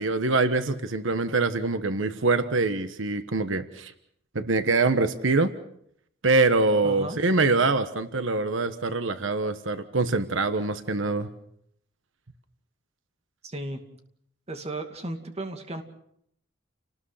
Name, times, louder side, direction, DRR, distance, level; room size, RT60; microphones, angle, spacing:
voice 1, 0.0-3.9 4.3-5.5 6.2-11.3, right 3 dB, 85° right, 10 dB, 1.3 m, -24 dB
voice 2, 6.8-7.2 13.4-13.8 14.5-15.8, right 2 dB, 35° right, 5 dB, 2.4 m, -35 dB
30.0 x 19.5 x 5.7 m, 0.71 s
head